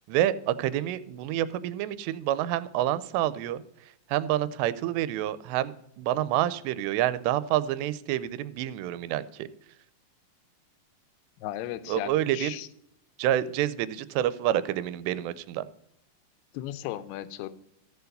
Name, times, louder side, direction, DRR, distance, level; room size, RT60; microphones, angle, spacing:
voice 1, 0.1-3.6 4.1-9.5 11.9-12.6 13.2-15.7, right 12 dB, 85° right, 15 dB, 2.7 m, -28 dB
voice 2, 11.4-12.7 16.5-17.5, left 13 dB, 80° left, 14 dB, 2.5 m, -36 dB
14.0 x 4.7 x 6.5 m, 0.75 s
omnidirectional pair, 5.0 m